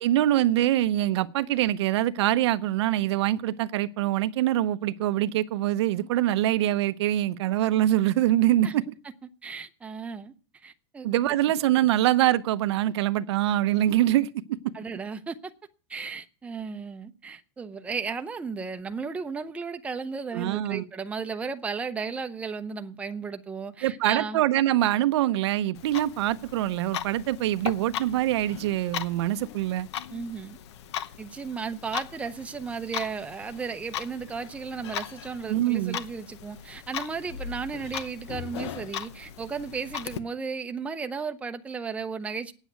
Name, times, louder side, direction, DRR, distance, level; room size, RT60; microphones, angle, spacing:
voice 1, 0.0-8.9 11.0-14.3 20.3-20.8 23.8-29.9 35.5-36.0, right 13 dB, 80° right, 0.7 m, -24 dB
voice 2, 9.4-10.3 10.6-11.1 14.7-15.5 15.9-24.4 30.1-30.6 31.2-42.5, right 5 dB, 10° right, 0.6 m, -34 dB
Clock, 25.7-40.2, left 10 dB, 85° left, 0.9 m, -38 dB
9.1 x 8.1 x 9.2 m
supercardioid pair, 160°, 14 cm